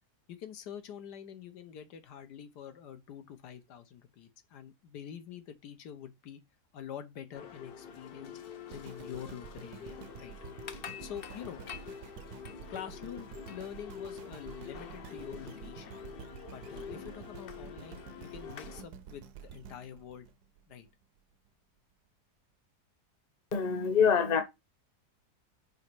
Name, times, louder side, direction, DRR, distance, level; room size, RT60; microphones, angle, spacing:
voice 1, 0.3-6.4 6.7-8.4 8.7-10.4 11.0-11.6 12.7-16.0 16.5-20.3 20.7-20.9, left 9 dB, 80° left, 1.5 m, -46 dB
sound 1, 7.3-18.8, left 7 dB, 60° left, 0.6 m, -46 dB
sound 2, 8.7-20.9 21.5-21.6, right 7 dB, 75° right, 1.2 m, -49 dB
voice 2, 23.5-24.4, left 6 dB, 30° left, 0.9 m, -25 dB
5.5 x 4.0 x 4.6 m
omnidirectional pair, 1.7 m